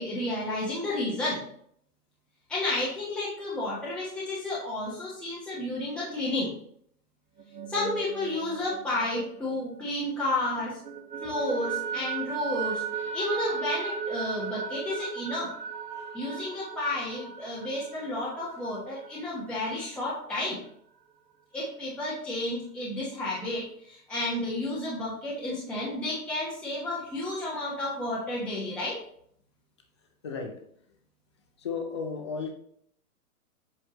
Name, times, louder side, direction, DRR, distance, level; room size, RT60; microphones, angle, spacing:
voice 1, 0.0-1.4 2.5-6.5 7.7-10.8 11.2-15.5 16.1-20.6 21.5-29.0, left 2 dB, ahead, -8 dB, 1.1 m, -31 dB
sound 1, 7.4-10.2 10.6-20.0, right 7 dB, 85° right, 1.3 m, -36 dB
voice 2, 30.2-30.6 31.6-32.5, left 5 dB, 20° left, 4 dB, 0.4 m, -34 dB
7.7 x 4.3 x 2.9 m, 0.64 s
hypercardioid pair, 140°, 47 cm